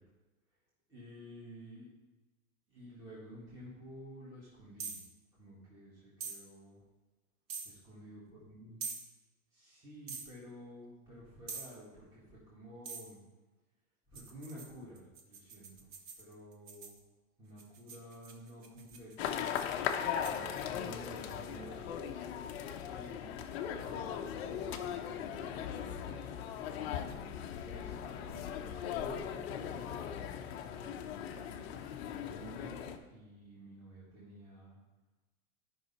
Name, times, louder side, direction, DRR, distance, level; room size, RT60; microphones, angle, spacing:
voice 1, 0.9-1.9 2.7-5.0 5.3-6.8 7.6-8.8 9.5-13.2 14.1-15.9 16.2-16.9 17.4-19.3 19.9-22.0 22.5-23.3 23.8-26.3 27.6-30.0 30.7-34.8, equal, 10° right, -9 dB, 1.8 m, -52 dB
sound 1, 4.8-5.1 6.2-6.4 7.5-7.7 8.8-9.0 10.1-10.3 11.5-11.8 12.8-13.1 14.1-17.0 17.6-20.6, right 5 dB, 25° right, 0.7 m, -45 dB
sound 2, 19.2-33.0, left 8 dB, 45° left, 0.7 m, -39 dB
11.0 x 5.5 x 4.2 m, 1.1 s
supercardioid pair, 160°, 44 cm